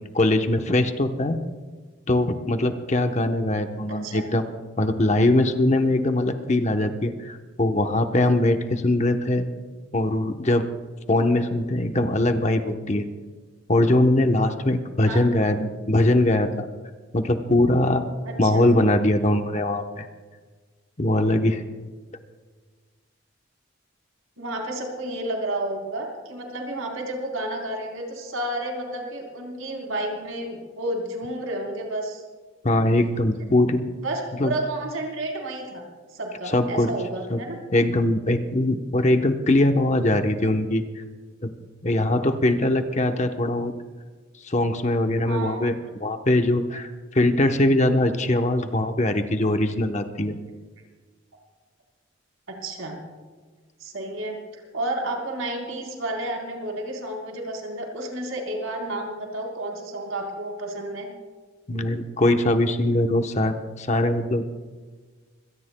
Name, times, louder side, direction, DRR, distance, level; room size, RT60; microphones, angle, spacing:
voice 1, 0.0-1.4 2.1-4.4 4.8-9.5 9.9-10.6 11.1-13.0 13.7-16.7 17.1-18.0 18.4-20.1 21.0-21.6 32.6-33.8 34.4-34.5 36.5-36.9 37.3-37.4 37.7-41.0 41.4-41.5 41.8-43.7 44.4-45.7 46.0-50.4 61.7-64.4, left 1 dB, 35° left, 6 dB, 0.9 m, -21 dB
voice 2, 18.2-18.6 24.4-32.2 33.0-33.1 34.0-35.8 36.1-37.6 45.3-45.7 52.5-53.0 53.8-61.1, right 1 dB, 85° right, 1 dB, 4.0 m, -31 dB
25.5 x 17.5 x 2.2 m, 1.5 s
head